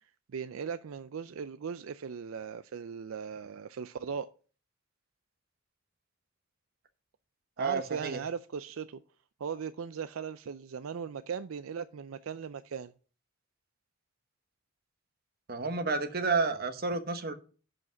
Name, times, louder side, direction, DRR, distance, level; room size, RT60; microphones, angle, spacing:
voice 1, 0.3-4.3 7.6-9.0 9.4-12.9, right 6 dB, 80° right, 0.4 m, -38 dB
voice 2, 7.6-8.2 15.5-17.3, right 4 dB, 45° right, 1.1 m, -30 dB
11.0 x 5.1 x 6.1 m
head